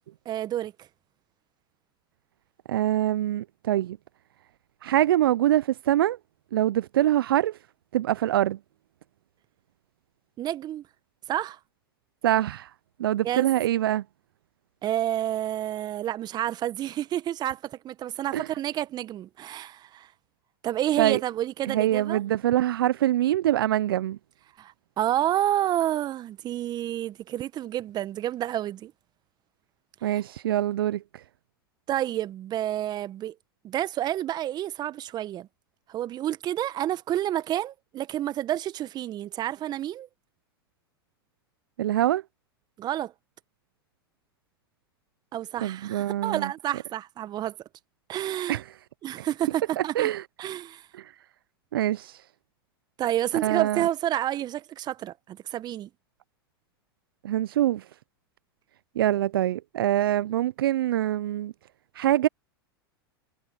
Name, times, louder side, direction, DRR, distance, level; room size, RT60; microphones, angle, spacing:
voice 1, 0.2-0.9 10.4-10.8 11.3-11.6 13.2-13.5 14.8-20.1 20.6-22.2 24.6-28.9 31.9-33.3 33.6-35.5 35.9-40.1 42.8-43.1 45.3-47.6 48.1-48.6 49.0-50.1 50.4-50.9 53.0-55.9, right 12 dB, 35° right, 1.5 m, -29 dB
voice 2, 2.7-4.0 4.8-6.2 6.5-7.6 7.9-8.6 12.2-12.7 13.0-14.0 18.3-18.5 21.0-21.2 21.6-24.2 30.0-31.2 41.8-42.2 45.6-46.5 48.5-48.6 49.8-50.3 50.9-51.1 51.7-52.2 53.4-53.8 57.2-57.9 59.0-61.5 61.9-62.3, right 13 dB, 65° right, 0.6 m, -24 dB
hypercardioid pair, 95°, 13 cm